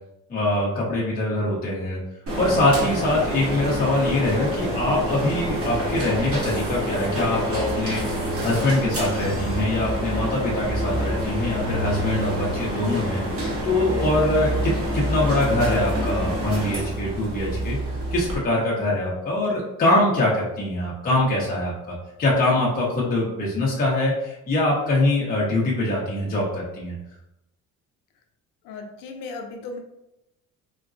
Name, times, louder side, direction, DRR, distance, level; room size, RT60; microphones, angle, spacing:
voice 1, 0.3-2.0 2.4-13.2 13.6-17.8 18.1-27.0, left 2 dB, 30° left, -5 dB, 0.7 m, -23 dB
sound 1, 2.3-18.4, equal, 45° right, 1.0 m, -27 dB
voice 2, 28.6-29.8, left 3 dB, 85° left, 4 dB, 0.6 m, -36 dB
3.8 x 2.1 x 2.5 m, 0.89 s
cardioid pair, 120°, 32 cm